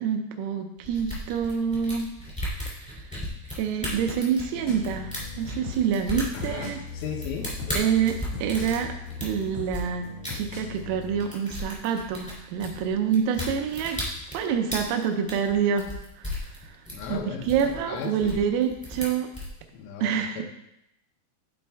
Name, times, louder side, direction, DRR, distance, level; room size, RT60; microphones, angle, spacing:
voice 1, 0.0-2.1 2.8-2.9 3.6-6.8 7.8-10.1 10.3-14.0 14.3-15.9 16.2-16.8 17.1-19.3 20.0-20.4, right 7 dB, 85° right, 5 dB, 3.4 m, -27 dB
sound 1, 0.8-9.8 10.2-10.3 10.7-10.9 11.2-19.5, left 1 dB, 5° left, 0.8 m, -35 dB
sound 2, 4.5-11.2, left 4 dB, 65° left, 1.7 m, -39 dB
voice 2, 6.3-7.9 16.9-18.4 19.7-20.4, left 6 dB, 85° left, 4 dB, 3.5 m, -36 dB
11.5 x 4.3 x 3.4 m, 0.83 s
omnidirectional pair, 5.9 m